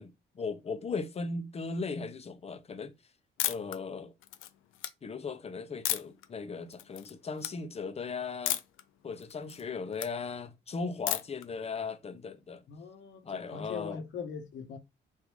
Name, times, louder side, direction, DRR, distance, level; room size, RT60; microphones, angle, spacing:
voice 1, 0.0-2.9 3.4-4.1 5.0-8.6 9.0-12.6 13.3-14.0, left 4 dB, 30° left, 0.6 m, -37 dB
sound 1, 3.4-3.8 4.2-4.9 5.9-6.3 6.7-7.1 7.4-7.5 8.5-8.8 9.2-10.1 11.1-11.4, left 13 dB, 90° left, 0.5 m, -33 dB
voice 2, 12.7-14.8, left 6 dB, 70° left, 1.1 m, -41 dB
3.6 x 2.6 x 3.1 m
cardioid pair, 90°, 20 cm